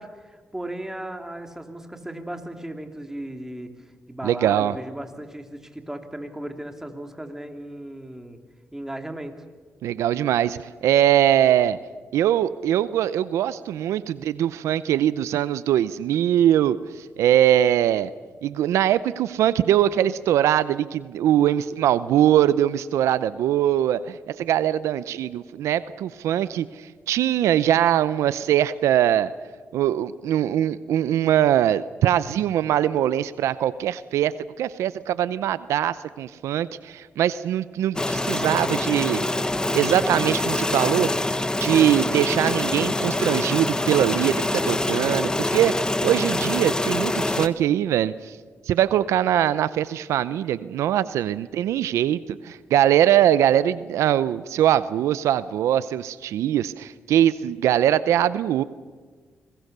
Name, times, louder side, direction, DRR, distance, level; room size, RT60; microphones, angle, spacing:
voice 1, 0.0-8.4 8.7-9.5, right 1 dB, 10° right, 5 dB, 3.0 m, -36 dB
voice 2, 4.2-4.7 9.8-11.8 12.1-18.1 18.4-29.3 29.7-39.2 39.7-41.1 41.6-48.4 48.7-58.6, right 11 dB, 90° right, 16 dB, 0.6 m, -22 dB
sound 1, 38.0-47.5, left 2 dB, 15° left, 1.3 m, -25 dB
26.5 x 20.5 x 6.7 m, 1.5 s
cardioid pair, 70°, 5 cm